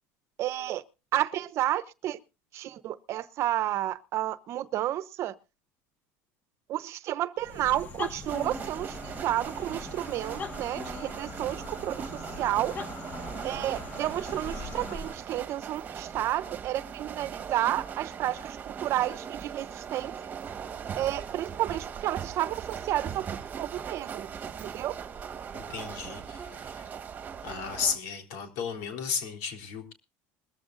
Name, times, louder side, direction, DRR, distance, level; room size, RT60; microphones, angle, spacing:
voice 1, 0.4-0.8 1.1-2.2 2.5-5.3 6.7-12.0 12.4-12.8 13.4-20.1 21.0-23.3 23.6-24.3 24.6-25.0, right 13 dB, 50° right, 0.9 m, -31 dB
sound 1, 7.4-15.3, left 3 dB, 30° left, 1.7 m, -41 dB
sound 2, 8.3-28.0, right 7 dB, 30° right, 1.4 m, -40 dB
voice 2, 25.5-26.8 27.4-29.9, left 6 dB, 85° left, 3.7 m, -34 dB
21.0 x 14.5 x 2.6 m
cardioid pair, 145°, 6 cm